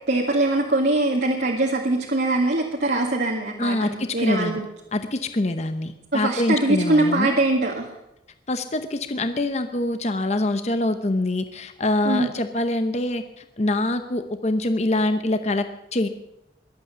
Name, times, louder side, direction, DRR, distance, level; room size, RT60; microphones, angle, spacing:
voice 1, 0.1-4.6 6.1-7.9 12.1-12.3, right 2 dB, 60° right, -2 dB, 2.0 m, -22 dB
voice 2, 3.6-4.6 4.9-7.4 8.5-13.2 13.6-16.1, left 1 dB, 35° left, 9 dB, 0.8 m, -24 dB
22.5 x 8.5 x 6.9 m, 0.87 s
head